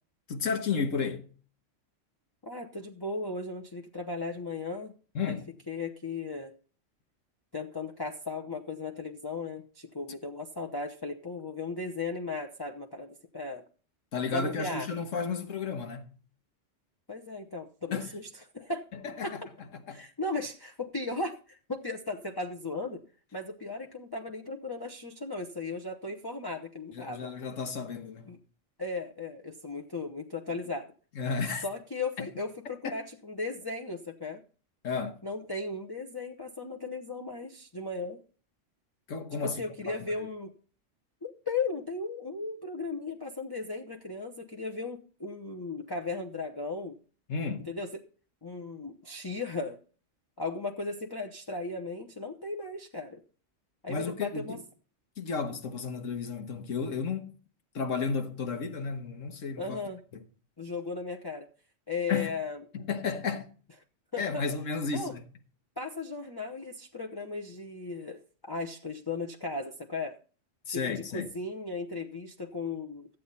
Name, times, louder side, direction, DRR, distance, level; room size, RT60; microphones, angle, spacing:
voice 1, 0.3-1.3 5.1-5.5 14.1-16.2 17.9-18.2 19.0-19.4 19.7-20.1 26.9-28.3 31.1-31.6 32.2-32.3 32.8-32.9 34.8-35.2 39.1-39.6 39.9-40.3 47.3-47.7 53.9-54.6 55.2-57.3 57.7-59.8 60.1-60.2 62.1-62.4 62.7-63.5 64.2-65.3 70.7-71.3, left 5 dB, 85° left, 1.6 m, -33 dB
voice 2, 2.4-4.9 5.2-5.4 5.7-6.5 7.5-13.6 14.3-14.9 17.1-18.3 18.5-18.8 19.2-19.5 19.9-23.0 23.3-27.3 28.3-28.4 28.8-30.9 31.6-34.4 35.2-38.2 39.4-40.5 41.2-47.0 47.7-47.9 48.4-49.8 50.4-53.2 53.8-54.6 59.6-60.0 60.6-61.5 61.9-62.6 64.1-64.4 64.9-65.1 65.8-70.2 70.7-70.8 71.1-73.1, left 3 dB, 20° left, 0.8 m, -36 dB
13.5 x 8.4 x 4.1 m
omnidirectional pair, 1.3 m